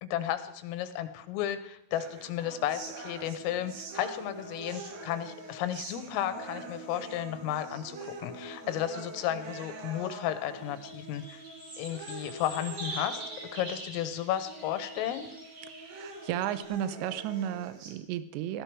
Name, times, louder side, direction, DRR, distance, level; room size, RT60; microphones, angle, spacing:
voice 1, 0.0-11.4 11.8-13.2 13.5-15.3, left 11 dB, 85° left, 11 dB, 3.7 m, -33 dB
sound 1, 1.9-17.9, right 3 dB, 55° right, 3.4 m, -45 dB
sound 2, 10.6-16.6, right 2 dB, 35° right, 3.0 m, -44 dB
voice 2, 15.7-18.6, right 11 dB, 80° right, 13 dB, 2.6 m, -34 dB
17.0 x 15.0 x 4.8 m, 0.75 s
omnidirectional pair, 5.9 m